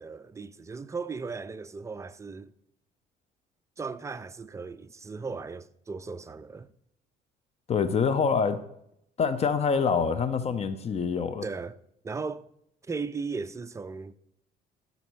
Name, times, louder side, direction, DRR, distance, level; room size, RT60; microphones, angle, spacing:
voice 1, 0.0-2.5 3.8-6.7 11.4-11.8 12.0-12.5 12.9-14.1, right 4 dB, 15° right, 0.4 m, -36 dB
voice 2, 7.7-8.6 9.2-11.4, left 5 dB, 40° left, 0.6 m, -25 dB
11.0 x 4.0 x 6.1 m
cardioid pair, 110°, 17 cm